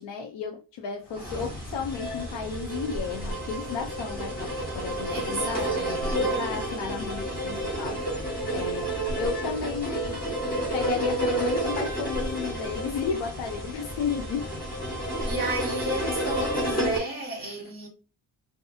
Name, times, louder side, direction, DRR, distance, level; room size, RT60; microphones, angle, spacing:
voice 1, 0.0-5.7 6.2-8.9 9.2-10.2 10.6-14.5 17.4-17.5, left 6 dB, 85° left, 0.5 m, -33 dB
sound 1, 1.1-17.0, right 1 dB, 20° left, 1.1 m, -30 dB
voice 2, 5.1-6.3 15.3-17.9, right 2 dB, 20° right, 1.1 m, -33 dB
2.6 x 2.3 x 2.5 m
wide cardioid pair, 140°, 42 cm